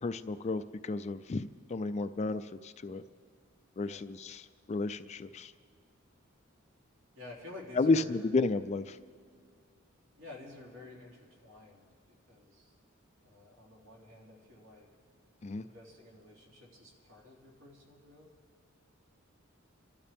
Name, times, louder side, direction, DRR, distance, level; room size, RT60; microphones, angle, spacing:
voice 1, 0.0-3.0 3.8-4.4 4.7-5.5 7.8-9.0 15.4-15.6, left 3 dB, 30° left, 11 dB, 0.4 m, -32 dB
voice 2, 7.1-8.5 10.2-12.7 13.2-14.9 15.6-18.3, left 2 dB, 65° right, -3 dB, 3.2 m, -51 dB
26.5 x 12.5 x 3.5 m, 2.2 s
head